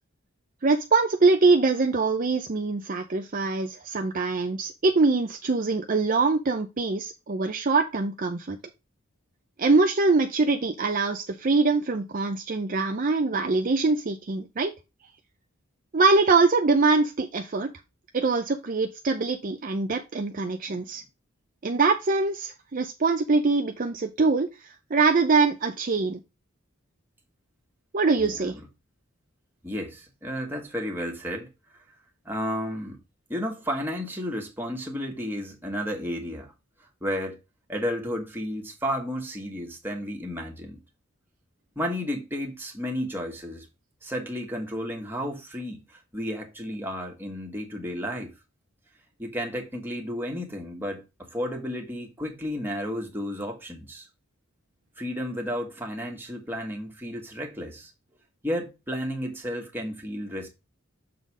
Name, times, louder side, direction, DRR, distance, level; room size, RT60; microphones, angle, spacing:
voice 1, 0.6-8.6 9.6-14.7 15.9-17.7 18.1-21.0 21.6-26.2 27.9-28.5, right 3 dB, 40° right, 0.6 m, -23 dB
voice 2, 29.6-31.5 32.3-33.0 33.3-36.5 37.0-37.4 37.7-40.8 41.8-43.7 44.0-45.8 46.1-48.3 49.2-51.0 51.3-54.0 55.0-57.9 58.4-60.5, equal, 10° right, 1.8 m, -32 dB
6.9 x 3.9 x 4.9 m
head